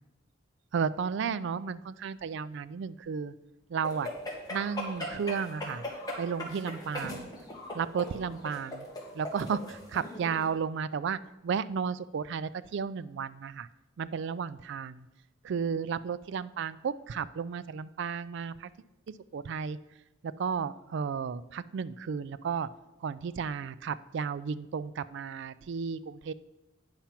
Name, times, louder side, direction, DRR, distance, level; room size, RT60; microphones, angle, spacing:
voice 1, 0.7-3.3 3.7-4.1 4.5-5.9 6.2-7.3 7.7-8.9 9.1-13.7 14.0-15.1 15.4-18.7 19.3-19.8 20.2-22.7 23.0-26.3, right 6 dB, 65° right, 16 dB, 0.3 m, -33 dB
sound 1, 3.8-10.5, left 1 dB, 20° left, 1.8 m, -39 dB
8.8 x 5.7 x 5.8 m, 1.0 s
head